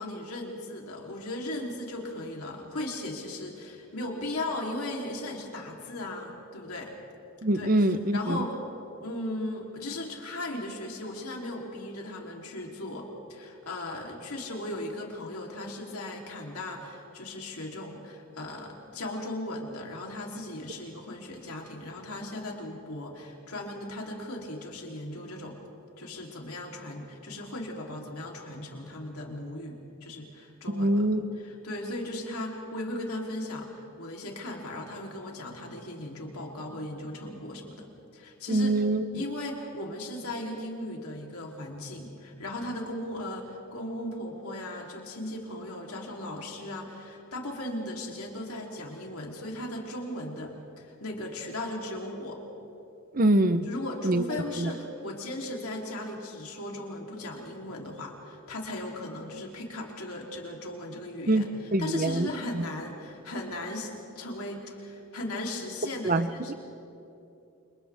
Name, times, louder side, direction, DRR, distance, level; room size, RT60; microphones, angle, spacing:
voice 1, 0.0-6.9 7.5-8.5 9.0-25.6 26.0-31.0 31.4-37.9 38.1-38.8 39.1-52.4 53.7-61.5 61.8-66.5, left 1 dB, 90° left, -1 dB, 3.5 m, -37 dB
voice 2, 7.4-8.4 30.7-31.2 38.5-39.0 53.1-53.7 54.0-54.2 54.6-54.7 61.3-61.5 61.7-62.3 62.5-62.6 66.0-66.5, right 1 dB, 40° right, 11 dB, 0.8 m, -24 dB
29.0 x 28.0 x 3.6 m, 2.7 s
head